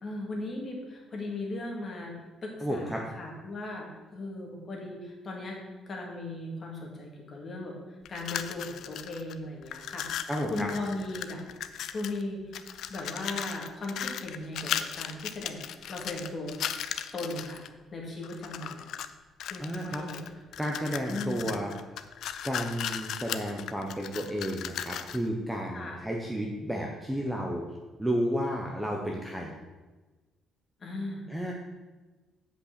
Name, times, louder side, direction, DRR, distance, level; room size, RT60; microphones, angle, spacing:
voice 1, 0.0-2.1 2.4-5.6 5.9-7.8 8.1-11.4 11.9-12.6 12.9-16.6 17.1-17.6 17.9-18.9 19.5-20.2 21.1-21.5 25.7-26.0 30.8-31.2, left 2 dB, 30° left, -1 dB, 2.0 m, -37 dB
voice 2, 2.6-3.0 10.3-10.7 19.6-20.0 20.6-22.0 22.4-27.6 28.0-29.5 31.3-31.5, equal, 5° right, 0 dB, 0.8 m, -32 dB
sound 1, 8.1-9.3 9.6-12.2 12.5-17.7 18.2-19.1 19.4-25.3, left 9 dB, 60° left, 0.5 m, -37 dB
8.2 x 5.5 x 6.6 m, 1.2 s
cardioid pair, 175°, 0 cm